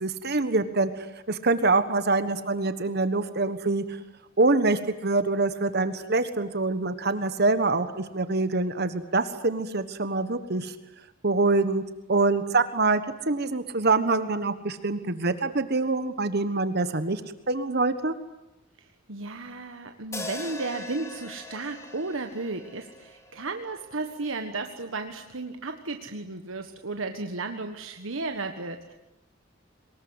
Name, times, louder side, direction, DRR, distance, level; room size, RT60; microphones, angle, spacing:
voice 1, 0.0-4.0 4.4-10.7 11.2-11.8 12.1-17.2 17.5-18.1, right 3 dB, 55° right, 11 dB, 1.4 m, -25 dB
voice 2, 18.8-28.9, right 3 dB, 85° right, 6 dB, 1.5 m, -34 dB
sound 1, 20.1-24.4, left 1 dB, 15° left, 2.4 m, -41 dB
23.5 x 20.5 x 9.8 m, 0.94 s
head